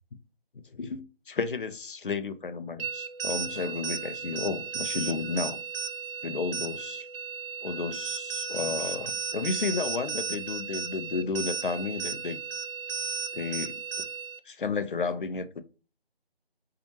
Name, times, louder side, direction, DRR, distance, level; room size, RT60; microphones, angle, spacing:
voice 1, 0.5-5.6 6.2-7.1 7.6-12.4 13.3-13.8 14.5-15.6, left 4 dB, 60° left, 0.5 m, -32 dB
sound 1, 2.8-14.4, right 6 dB, 70° right, 0.4 m, -35 dB
2.6 x 2.4 x 2.8 m
figure-of-eight pair, 160°, 30 cm